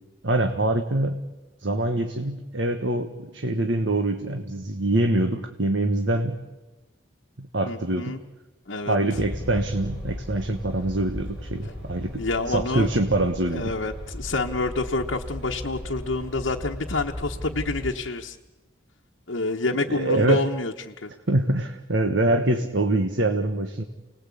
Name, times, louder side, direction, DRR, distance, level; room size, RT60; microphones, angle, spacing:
voice 1, 0.2-1.2 1.6-6.4 7.4-8.2 8.9-13.7 19.9-20.5 21.3-23.8, right 2 dB, 75° right, 6 dB, 1.4 m, -24 dB
voice 2, 7.7-8.2 8.7-9.2 11.6-11.7 12.2-12.9 13.5-18.4 19.3-21.1, left 3 dB, 80° left, 0 dB, 1.2 m, -28 dB
sound 1, 9.1-17.9, left 1 dB, 5° right, 6.4 m, -36 dB
29.5 x 19.5 x 8.5 m, 1.1 s
head